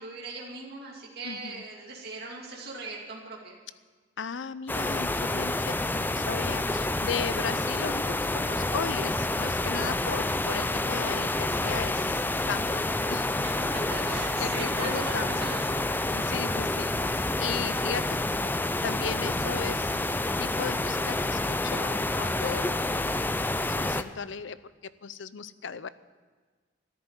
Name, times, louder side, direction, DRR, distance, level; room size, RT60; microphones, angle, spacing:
voice 1, 0.0-3.6 7.7-8.0 13.4-16.0, right 3 dB, 55° right, -3 dB, 2.5 m, -39 dB
voice 2, 1.2-1.6 4.2-13.3 14.1-15.5 16.1-16.9 17.4-18.1 18.8-20.0 20.4-22.9 23.6-24.6 24.8-25.9, left 6 dB, 70° left, 15 dB, 0.6 m, -36 dB
sound 1, 4.7-24.0, left 2 dB, 10° left, 0.5 m, -28 dB
13.5 x 10.5 x 8.9 m, 1.4 s
head